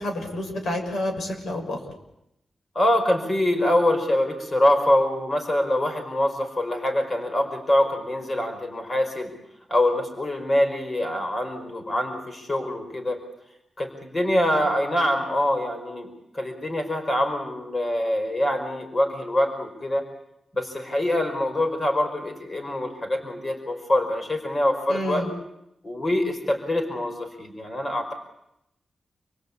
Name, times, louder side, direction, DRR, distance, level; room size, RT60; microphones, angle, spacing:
voice 1, 0.0-1.8 24.9-25.3, left 1 dB, 85° left, 4 dB, 6.5 m, -29 dB
voice 2, 2.7-9.3 9.7-13.2 13.8-20.0 20.5-25.3 25.8-28.1, left 1 dB, 30° left, 5 dB, 5.0 m, -24 dB
29.0 x 22.0 x 8.6 m, 0.86 s
wide cardioid pair, 115°, 0 cm